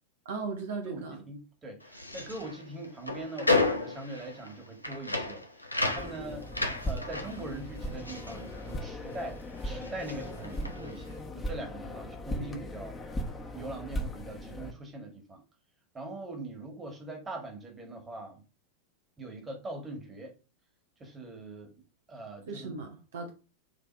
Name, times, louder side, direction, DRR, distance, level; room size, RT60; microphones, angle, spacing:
voice 1, 0.2-1.2 22.5-23.3, right 4 dB, 60° right, 1.0 m, -37 dB
voice 2, 0.8-6.5 6.8-9.4 9.6-13.0 13.5-15.4 15.9-18.4 19.2-20.3 21.0-21.7 22.1-22.8, right 2 dB, 20° right, 2.0 m, -42 dB
sound 1, 1.8-9.3 9.6-11.0, left 3 dB, 85° left, 0.8 m, -33 dB
sound 2, 6.0-14.7, equal, 15° left, 1.2 m, -38 dB
7.3 x 3.4 x 4.7 m
figure-of-eight pair, 90°, 0 cm